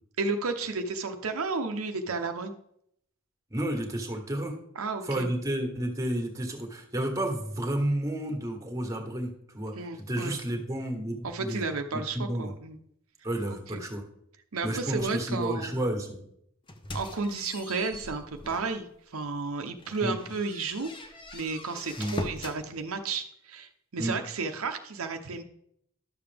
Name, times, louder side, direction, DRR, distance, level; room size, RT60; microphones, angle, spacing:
voice 1, 0.2-2.5 4.7-5.3 9.8-10.3 11.2-12.8 13.4-13.8 14.5-15.7 16.9-20.9 21.3-25.4, right 4 dB, 85° right, 6 dB, 0.8 m, -32 dB
voice 2, 3.5-4.6 5.0-9.7 10.1-11.6 11.9-12.5 13.2-14.0 14.6-16.2 20.0-20.2 22.0-22.2 24.0-24.2, right 1 dB, 15° right, 2 dB, 1.5 m, -31 dB
sound 1, 16.7-18.8 19.2-19.4 19.8-22.6, left 1 dB, 25° left, 0.8 m, -40 dB
11.5 x 6.9 x 3.5 m, 0.72 s
head